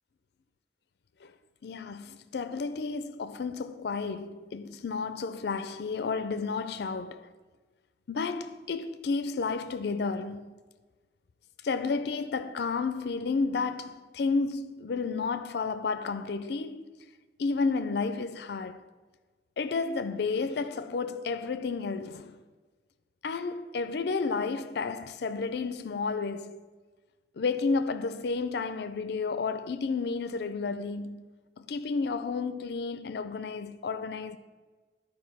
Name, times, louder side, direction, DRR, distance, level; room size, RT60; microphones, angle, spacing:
voice 1, 1.6-7.3 8.1-10.5 11.6-16.9 17.4-18.8 19.6-22.4 23.2-26.6 27.4-31.3 31.6-34.4, left 4 dB, 65° left, 0.4 m, -31 dB
10.5 x 4.7 x 5.9 m
head